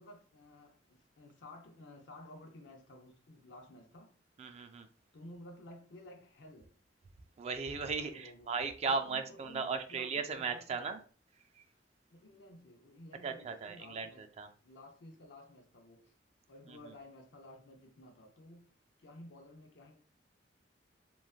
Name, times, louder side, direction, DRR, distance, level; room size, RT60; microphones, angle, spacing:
voice 1, 0.0-4.1 5.1-6.7 7.9-8.5 8.8-10.9 12.1-14.2 14.6-16.1 16.5-18.6 19.0-20.0, left 1 dB, 85° left, 0.6 m, -54 dB
voice 2, 4.4-4.9 7.4-11.0 11.6-11.7 13.2-14.5 16.7-16.8, right 5 dB, 35° right, 0.3 m, -37 dB
3.0 x 2.5 x 2.3 m
head